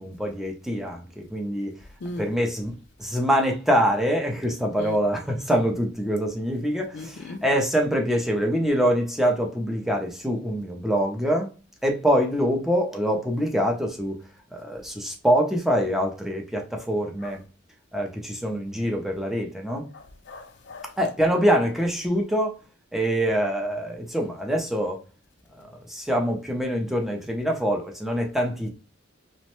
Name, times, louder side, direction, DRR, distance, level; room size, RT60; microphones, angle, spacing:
voice 1, 0.0-1.7 2.2-11.5 11.8-14.2 14.5-17.4 17.9-19.9 21.0-22.6 22.9-25.0 25.6-28.7, equal, ahead, 0.5 m, -25 dB
voice 2, 2.0-2.4 4.7-5.0 6.9-7.4 17.2-17.3 19.9-20.9, left 2 dB, 55° left, 0.4 m, -38 dB
3.0 x 2.1 x 2.9 m
head